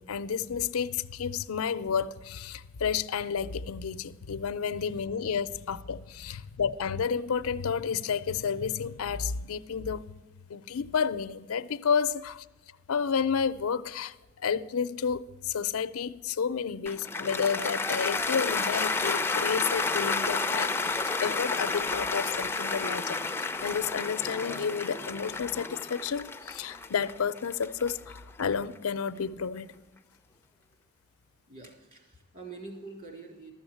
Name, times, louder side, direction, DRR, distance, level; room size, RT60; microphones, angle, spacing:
voice 1, 0.0-10.1 10.5-12.5 12.9-29.8, left 6 dB, 85° left, 0.5 m, -31 dB
Cheering / Applause, 16.9-29.1, left 3 dB, 10° left, 0.4 m, -31 dB
voice 2, 31.5-33.5, right 3 dB, 40° right, 3.6 m, -45 dB
13.0 x 7.1 x 8.5 m
head